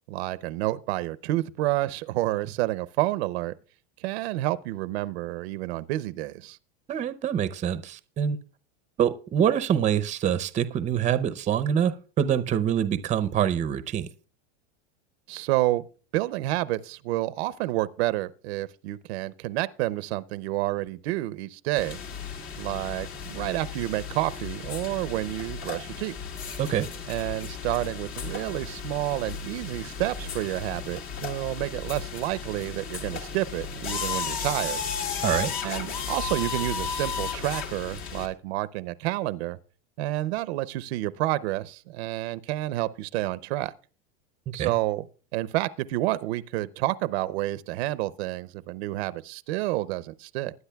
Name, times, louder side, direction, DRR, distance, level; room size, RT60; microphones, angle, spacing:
voice 1, 0.1-3.5 4.0-6.6 15.3-15.8 16.1-22.0 22.6-26.2 27.1-34.8 35.1-35.2 35.6-39.6 40.0-43.7 44.5-45.1 45.3-50.5, right 17 dB, 75° right, 0.6 m, -29 dB
voice 2, 6.9-8.4 9.0-14.1 26.6-26.9 35.2-35.5 44.5-44.7, right 9 dB, 20° right, 0.6 m, -25 dB
sound 1, 21.8-38.3, left 6 dB, 60° left, 1.9 m, -34 dB
20.5 x 9.7 x 2.3 m
supercardioid pair, 135°, 32 cm